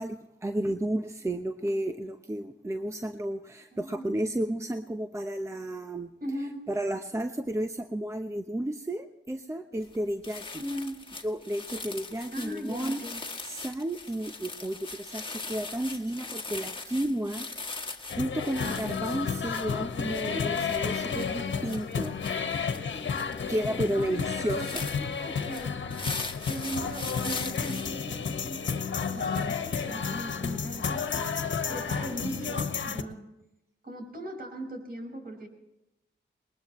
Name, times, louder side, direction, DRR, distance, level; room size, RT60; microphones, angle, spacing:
voice 1, 0.0-6.1 6.7-10.6 11.2-13.0 13.4-22.1 23.5-24.9, right 1 dB, 15° right, 7 dB, 0.9 m, -32 dB
voice 2, 3.7-4.1 6.2-6.7 10.6-11.1 12.3-13.2 24.0-24.7 25.2-25.7 26.5-31.1 31.7-33.3 33.8-35.5, right 1 dB, 45° right, 3 dB, 5.5 m, -39 dB
sound 1, 9.8-10.0 10.2-27.9, left 3 dB, 25° left, 1.7 m, -40 dB
sound 2, 18.1-33.0, left 6 dB, 65° left, 1.5 m, -32 dB
20.5 x 20.0 x 3.1 m, 0.90 s
cardioid pair, 85°, 21 cm